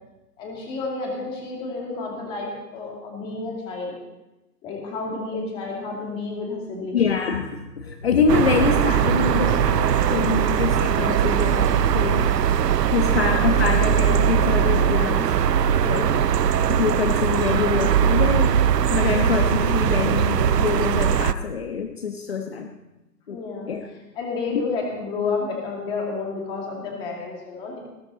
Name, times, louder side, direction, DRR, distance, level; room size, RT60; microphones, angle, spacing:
voice 1, 0.4-3.9 4.6-7.0 12.9-13.2 13.5-13.6 15.8-16.2 23.3-23.7 24.1-27.8, left 4 dB, 10° left, -1 dB, 2.2 m, -31 dB
voice 2, 6.9-12.3 12.9-15.3 15.7-16.1 16.7-18.6 18.9-22.7 23.3-23.4 23.7-23.9 24.5-24.6, left 6 dB, 40° left, 4 dB, 1.2 m, -25 dB
sound 1, 8.3-21.3, right 8 dB, 80° right, 0.9 m, -20 dB
20.0 x 14.0 x 4.0 m, 1.0 s
hypercardioid pair, 175°, 49 cm